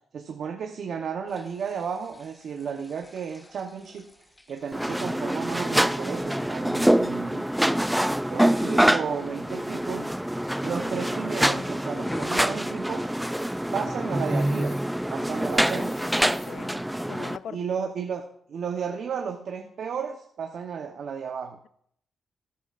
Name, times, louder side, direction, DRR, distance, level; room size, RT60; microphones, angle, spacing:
voice 1, 0.1-4.1 4.5-7.5 8.3-10.1 10.6-13.1 13.7-14.8 15.1-16.0 17.5-21.6, right 6 dB, 70° right, 1.0 m, -33 dB
sound 1, 1.3-9.1 9.6-9.9 10.2-11.3 11.9-16.7, left 1 dB, 15° left, 0.9 m, -46 dB
Engine / Mechanisms, 4.6-4.9 5.4-6.7 7.5-7.6 10.3-10.8 11.1-11.5 12.0-12.5 13.0-13.6 13.9-16.6 17.1-17.3, left 2 dB, 40° left, 4.6 m, -51 dB
sound 2, 4.7-17.4, right 1 dB, 5° right, 0.4 m, -25 dB
voice 2, 16.3-17.7, left 9 dB, 75° left, 0.5 m, -41 dB
13.5 x 12.5 x 2.5 m
cardioid pair, 70°, 0 cm